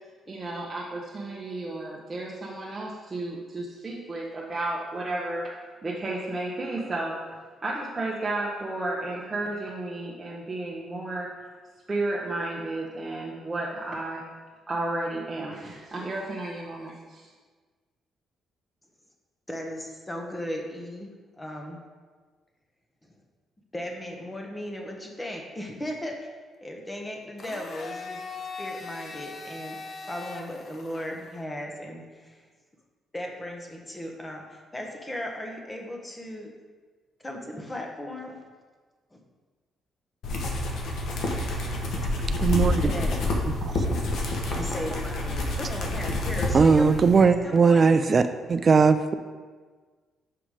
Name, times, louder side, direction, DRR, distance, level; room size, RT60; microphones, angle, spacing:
voice 1, 0.3-5.5 5.8-7.4 7.6-11.3 11.9-14.2 14.7-17.3, right 2 dB, 25° right, -5 dB, 1.0 m, -32 dB
voice 2, 19.5-21.1 21.4-21.8 23.7-26.2 26.6-28.2 28.6-29.8 30.1-32.4 33.1-36.5 37.2-38.4 39.1-39.2 42.8-43.3 44.4-48.0, left 1 dB, 15° left, 1 dB, 1.2 m, -36 dB
Domestic sounds home sounds, 27.4-31.4, left 4 dB, 50° left, 0.7 m, -40 dB
sound 1, 40.2-47.2, left 2 dB, 70° left, 1.1 m, -28 dB
voice 3, 42.4-42.9 43.7-43.8 46.5-48.2 48.5-49.1, right 5 dB, 40° right, 9 dB, 0.3 m, -19 dB
5.8 x 5.0 x 4.9 m, 1.4 s
cardioid pair, 90°, 0 cm